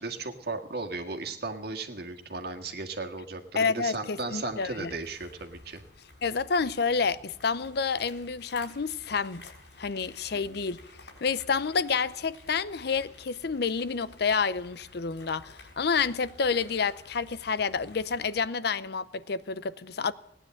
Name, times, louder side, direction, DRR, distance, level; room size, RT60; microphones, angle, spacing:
voice 1, 0.0-5.8 10.3-10.6, right 3 dB, 65° right, 1.7 m, -36 dB
voice 2, 3.6-4.9 6.2-9.5 9.8-10.8 11.2-20.1, left 5 dB, 65° left, 0.7 m, -29 dB
sound 1, 4.2-18.5, left 2 dB, 90° left, 5.4 m, -53 dB
18.0 x 10.0 x 7.7 m
head